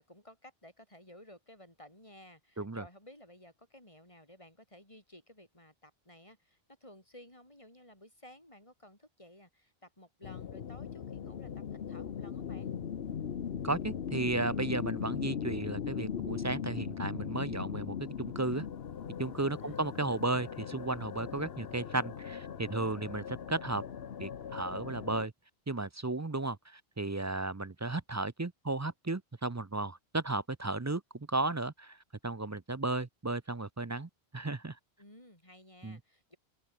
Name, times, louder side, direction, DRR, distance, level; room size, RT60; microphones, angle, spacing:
voice 1, 0.0-12.7 14.7-15.1 19.5-19.8 35.0-36.4, left 1 dB, 30° left, 7.0 m, -56 dB
sound 1, 10.2-25.3, left 8 dB, 70° left, 1.2 m, -39 dB
voice 2, 13.6-18.7 19.2-23.8 24.2-25.3 25.7-32.0 32.2-34.8 35.8-36.0, right 2 dB, 20° right, 0.5 m, -34 dB
open air
omnidirectional pair, 1.1 m